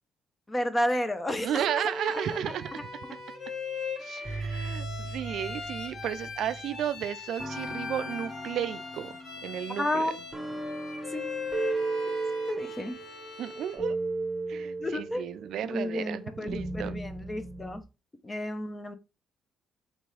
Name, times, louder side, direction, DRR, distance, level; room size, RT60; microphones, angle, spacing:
voice 1, 0.5-1.6 9.8-10.1 11.1-11.2 12.5-13.0 14.8-15.3 15.6-17.8 18.2-19.0, left 1 dB, 20° left, 0.8 m, -31 dB
Bowed string instrument, 1.4-13.9, left 4 dB, 60° left, 1.2 m, -39 dB
voice 2, 1.4-2.8 4.0-10.1 13.4-14.0 14.5-17.0, right 10 dB, 75° right, 0.4 m, -33 dB
sound 1, 2.3-3.5 4.2-6.8 7.4-17.8, right 3 dB, 15° right, 1.1 m, -36 dB
4.2 x 3.5 x 3.2 m
cardioid pair, 90°, 0 cm